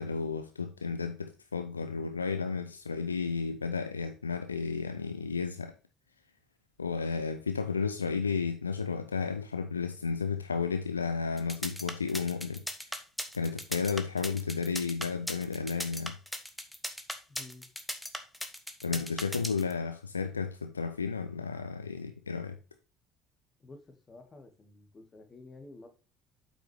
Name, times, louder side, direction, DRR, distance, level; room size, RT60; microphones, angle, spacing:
voice 1, 0.0-5.7 6.8-12.6 13.3-16.2 18.8-22.6, left 5 dB, 85° left, 0.5 m, -33 dB
sound 1, 11.4-19.7, left 1 dB, 5° left, 1.4 m, -37 dB
voice 2, 17.3-17.7 23.6-25.9, left 3 dB, 30° left, 2.0 m, -51 dB
8.3 x 6.0 x 3.5 m
figure-of-eight pair, 60°, 0 cm